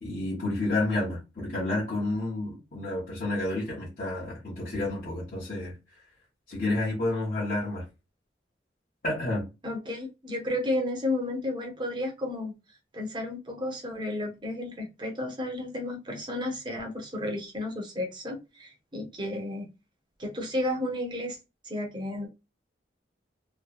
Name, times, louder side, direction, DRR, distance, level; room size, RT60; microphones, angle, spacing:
voice 1, 0.0-5.7 6.5-7.8 9.0-9.5, left 2 dB, 45° left, 1.0 m, -30 dB
voice 2, 9.6-12.6 12.9-19.7 20.2-21.4 21.6-22.3, left 1 dB, 25° right, 0.8 m, -32 dB
3.1 x 2.2 x 2.3 m
head